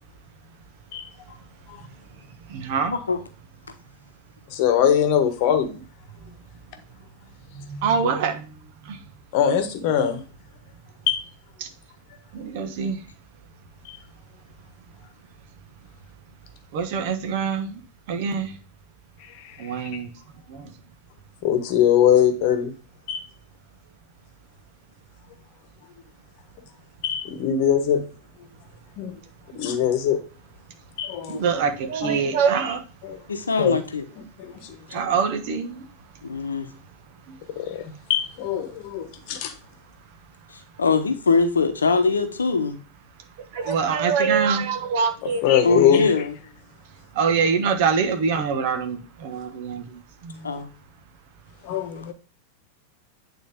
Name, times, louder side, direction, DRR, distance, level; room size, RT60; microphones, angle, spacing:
voice 1, 2.5-2.9 7.5-8.5 8.8-9.0 12.3-13.0 16.7-17.8 18.1-18.5 19.6-20.1 20.5-20.7 31.3-32.8 34.9-35.8 43.5-45.4 47.1-50.4, right 6 dB, 50° right, 1.3 m, -24 dB
voice 2, 4.5-5.8 9.3-10.2 11.1-11.2 13.8-14.0 19.4-20.0 21.4-22.7 23.1-23.2 27.0-28.0 29.0-29.1 29.5-30.2 31.0-31.5 32.0-32.1 33.0-33.2 33.6-33.8 34.4-35.0 37.5-39.5 45.2-46.1 51.6-52.1, left 9 dB, 45° left, 1.1 m, -22 dB
voice 3, 33.3-34.0 36.2-36.7 40.5-42.8 45.6-46.4 50.4-50.7 51.9-52.1, left 4 dB, 75° left, 0.9 m, -22 dB
8.9 x 4.0 x 3.6 m
figure-of-eight pair, 90°, 0 cm